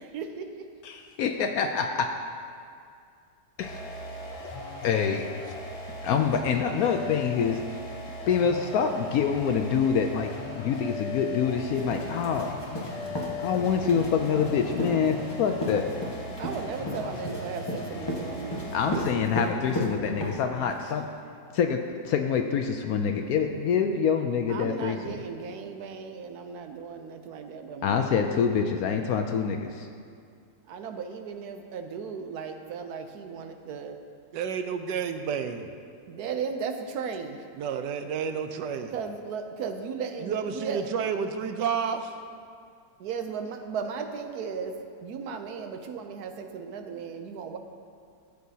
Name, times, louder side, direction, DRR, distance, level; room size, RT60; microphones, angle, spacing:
voice 1, 0.0-0.7 16.4-19.2 24.5-28.3 30.7-34.0 36.1-37.5 38.9-40.9 43.0-47.6, right 6 dB, 70° right, 6 dB, 1.1 m, -36 dB
voice 2, 0.8-2.1 3.6-3.9 4.8-5.3 6.0-7.6 8.3-12.6 13.4-15.9 18.7-21.1 21.5-25.2 27.8-29.9, left 6 dB, 70° left, 5 dB, 0.9 m, -26 dB
sound 1, 3.6-19.1, left 2 dB, 50° left, 1.3 m, -38 dB
sound 2, 11.7-20.9, equal, 15° left, 1.2 m, -34 dB
voice 3, 34.3-35.7 37.6-38.9 40.2-42.2, right 6 dB, 90° right, 8 dB, 1.3 m, -30 dB
15.0 x 8.0 x 2.8 m, 2.3 s
omnidirectional pair, 1.8 m